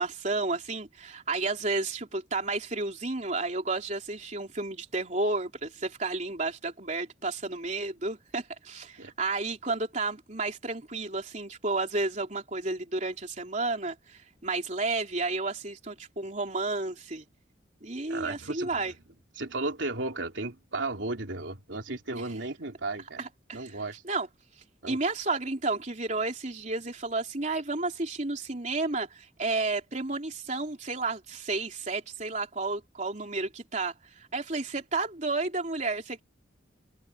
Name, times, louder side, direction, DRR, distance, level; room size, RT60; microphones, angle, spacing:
voice 1, 0.0-17.2 17.8-18.9 22.1-22.2 23.2-23.8 24.1-24.3 24.9-36.2, right 3 dB, 40° right, 3.5 m, -32 dB
voice 2, 18.1-18.8 19.4-23.2 23.5-24.0 24.8-25.0, right 2 dB, 90° right, 3.2 m, -34 dB
head